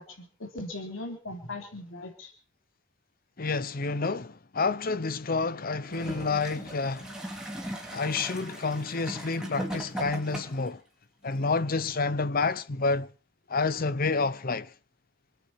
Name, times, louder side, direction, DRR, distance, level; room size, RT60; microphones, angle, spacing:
voice 1, 0.0-2.3, left 2 dB, 90° left, 3.4 m, -39 dB
voice 2, 3.4-7.1 7.9-10.8 11.2-13.1 13.5-14.7, left 4 dB, 45° left, 0.8 m, -29 dB
Gurgling / Toilet flush, 5.8-10.7 11.5-11.6, right 1 dB, 5° right, 3.7 m, -38 dB
26.0 x 9.3 x 5.9 m
head